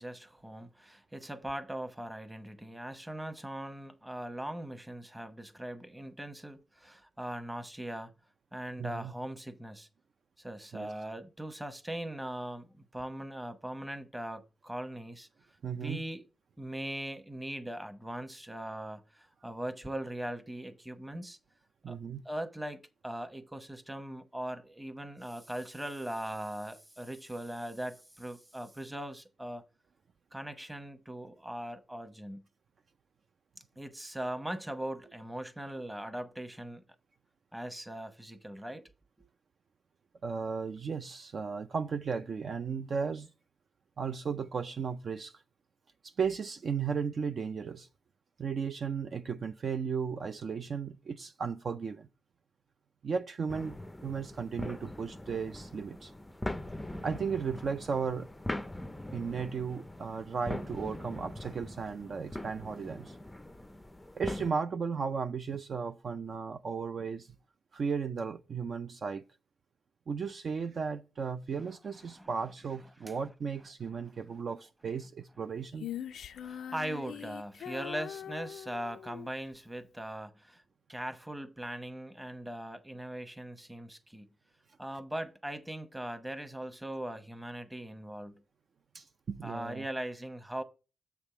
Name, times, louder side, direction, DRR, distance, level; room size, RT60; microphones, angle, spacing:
voice 1, 0.0-8.1 8.5-9.9 10.4-15.3 15.7-16.2 16.6-21.4 21.9-22.0 22.2-29.6 30.3-32.4 33.8-36.8 37.5-38.8 72.1-72.3 73.0-73.2 74.0-74.1 76.4-80.6 80.9-84.3 84.8-88.4 89.4-90.6, right 1 dB, 10° right, 0.9 m, -40 dB
voice 2, 8.8-9.1 10.7-10.9 15.6-16.0 21.8-22.2 40.2-43.3 44.0-45.4 46.0-47.9 48.4-52.1 53.0-56.1 57.0-58.3 59.1-63.1 64.1-67.3 67.7-69.2 70.1-75.9 88.9-89.9, right 6 dB, 55° right, 0.4 m, -35 dB
sound 1, 53.5-64.5, left 1 dB, 10° left, 0.4 m, -41 dB
Female singing, 75.8-79.3, left 9 dB, 90° left, 0.3 m, -42 dB
7.3 x 3.5 x 5.6 m
cardioid pair, 100°, 0 cm